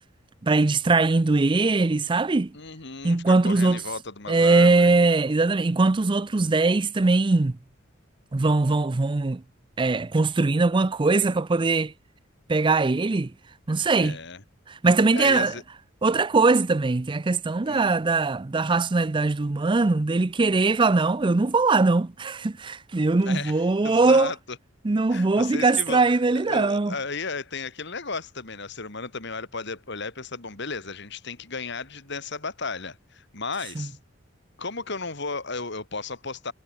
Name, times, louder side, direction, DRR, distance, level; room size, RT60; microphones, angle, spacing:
voice 1, 0.4-2.5 3.0-3.8 4.3-7.6 8.3-9.4 9.8-11.9 12.5-13.3 13.7-14.2 14.7-15.5 16.0-24.3 24.8-26.9 33.8-33.9, right 3 dB, 25° right, 0.5 m, -21 dB
voice 2, 2.5-4.9 14.0-14.4 15.1-15.6 17.6-17.9 23.2-23.5 23.8-24.4 25.1-26.0 26.3-34.0 34.6-36.5, left 4 dB, 60° left, 3.4 m, -34 dB
head